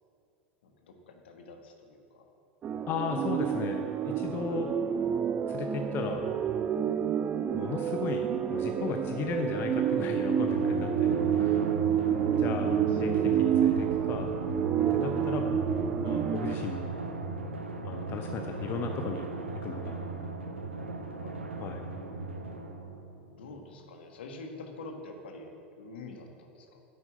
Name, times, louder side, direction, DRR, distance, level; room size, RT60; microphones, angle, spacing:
voice 1, 0.6-2.2 11.9-13.0 21.2-21.4 23.4-26.8, left 3 dB, 65° left, 3 dB, 1.6 m, -47 dB
sound 1, 2.6-16.5, right 9 dB, 25° right, 0.5 m, -29 dB
voice 2, 2.9-4.7 5.5-6.2 7.5-11.6 12.3-14.3 14.9-15.5 16.0-16.9 17.8-19.3 19.6-20.0 21.6-21.8, left 5 dB, 35° left, 4 dB, 0.8 m, -36 dB
Drum, 10.5-23.6, right 3 dB, 80° right, 1.0 m, -36 dB
10.5 x 8.1 x 8.0 m, 2.7 s
figure-of-eight pair, 85°, 6 cm